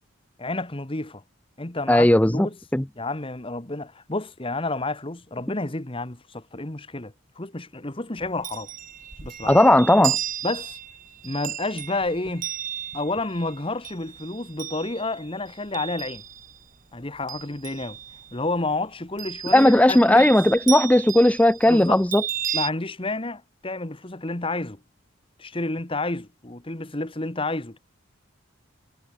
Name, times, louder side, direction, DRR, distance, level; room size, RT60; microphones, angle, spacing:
voice 1, 0.4-1.2 1.6-2.6 3.0-8.7 9.2-9.6 10.4-10.8 11.2-12.5 12.9-16.2 16.9-18.0 18.3-20.3 21.7-22.0 22.5-24.8 25.4-27.8, left 2 dB, 25° left, 1.4 m, -30 dB
voice 2, 1.9-2.5 2.7-2.8 9.5-10.2 19.5-22.2, left 1 dB, 5° left, 0.5 m, -17 dB
Chime, 8.2-16.7 17.0-18.4 19.2-22.7, right 11 dB, 40° right, 1.1 m, -34 dB
head